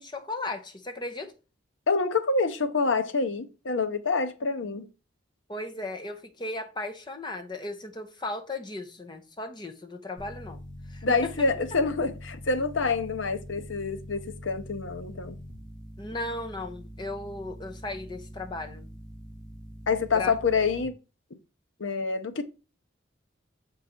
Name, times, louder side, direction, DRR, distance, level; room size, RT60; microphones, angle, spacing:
voice 1, 0.0-1.3 5.5-10.6 10.9-11.5 16.0-18.9 20.1-20.3, left 2 dB, 25° left, 0.8 m, -36 dB
voice 2, 1.9-4.9 11.0-15.4 19.9-21.0 21.8-22.4, left 4 dB, 80° left, 0.8 m, -27 dB
sound 1, 10.2-20.8, equal, 45° left, 3.0 m, -44 dB
6.9 x 3.9 x 4.4 m
head